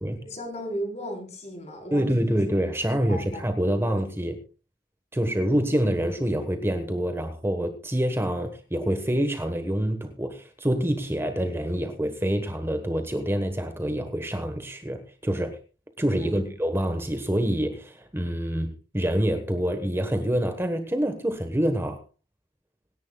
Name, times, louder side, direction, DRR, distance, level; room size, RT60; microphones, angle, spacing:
voice 1, 0.2-2.5 2.9-3.4 3.9-4.0 16.2-16.6, equal, 40° left, 4.2 m, -36 dB
voice 2, 1.9-4.3 5.1-15.6 16.0-22.0, equal, 15° right, 1.3 m, -26 dB
26.0 x 10.5 x 2.3 m
head